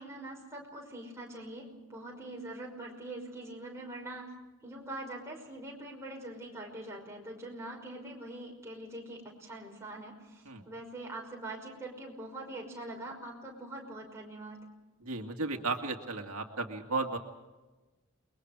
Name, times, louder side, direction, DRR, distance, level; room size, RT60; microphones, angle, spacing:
voice 1, 0.0-4.3 4.6-14.6, right 1 dB, 10° right, -2 dB, 5.6 m, -43 dB
voice 2, 15.0-17.2, right 3 dB, 90° right, 2 dB, 2.2 m, -34 dB
29.0 x 22.0 x 4.9 m, 1.1 s
head